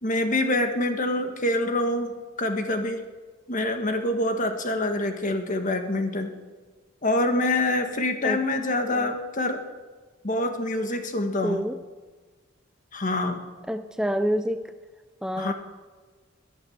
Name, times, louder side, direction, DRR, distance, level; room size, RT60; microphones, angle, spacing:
voice 1, 0.0-2.1 2.4-3.0 3.5-6.3 7.0-9.6 10.2-11.6 12.9-13.4 15.4-15.5, left 1 dB, 40° left, 6 dB, 1.6 m, -26 dB
voice 2, 11.4-11.8 13.7-14.7 15.2-15.5, equal, 5° right, 9 dB, 0.4 m, -27 dB
20.5 x 9.3 x 7.3 m, 1.4 s
head